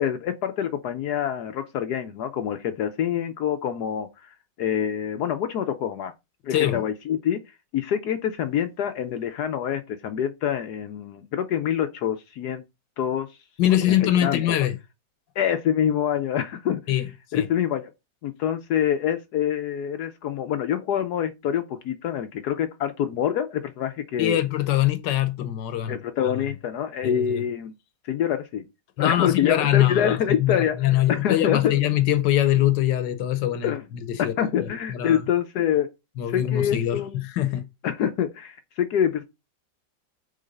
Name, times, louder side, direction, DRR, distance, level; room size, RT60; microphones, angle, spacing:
voice 1, 0.0-6.1 6.4-7.4 7.7-12.6 13.0-13.3 13.7-14.4 15.4-16.8 17.3-17.9 18.2-24.4 25.9-27.7 28.0-28.7 29.0-31.7 33.6-33.8 34.2-35.9 36.3-37.2 37.8-39.2, left 9 dB, 70° left, 1.2 m, -26 dB
voice 2, 6.5-6.8 13.6-14.8 16.9-17.1 17.3-17.4 24.2-26.0 27.0-27.4 29.0-33.7 34.2-34.3 34.9-35.2 36.2-37.6, left 12 dB, 85° left, 1.4 m, -23 dB
7.8 x 3.3 x 5.3 m
omnidirectional pair, 1.9 m